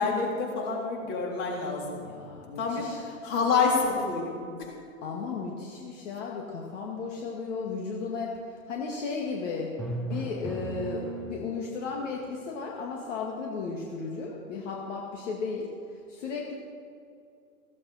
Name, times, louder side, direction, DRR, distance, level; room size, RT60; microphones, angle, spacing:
voice 1, 0.0-2.0 2.6-4.7, left 4 dB, 35° left, -1 dB, 3.6 m, -28 dB
voice 2, 2.0-3.0 5.0-9.7 10.1-15.7 16.1-16.5, left 4 dB, 60° left, -1 dB, 2.1 m, -35 dB
Drum, 9.8-11.8, right 2 dB, ahead, 0.4 m, -36 dB
15.5 x 15.0 x 4.2 m, 2.4 s
hypercardioid pair, 135°, 43 cm